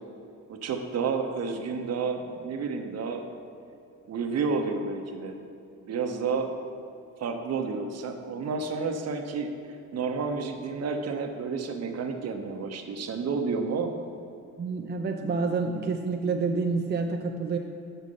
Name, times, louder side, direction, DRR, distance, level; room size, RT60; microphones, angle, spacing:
voice 1, 0.5-3.3 4.1-5.4 5.8-6.5 7.2-9.5 9.9-13.9, right 5 dB, 55° right, 5 dB, 0.9 m, -30 dB
voice 2, 14.6-17.6, right 4 dB, 35° right, 3 dB, 0.5 m, -28 dB
6.7 x 6.3 x 5.4 m, 2.7 s
cardioid pair, 90°, 30 cm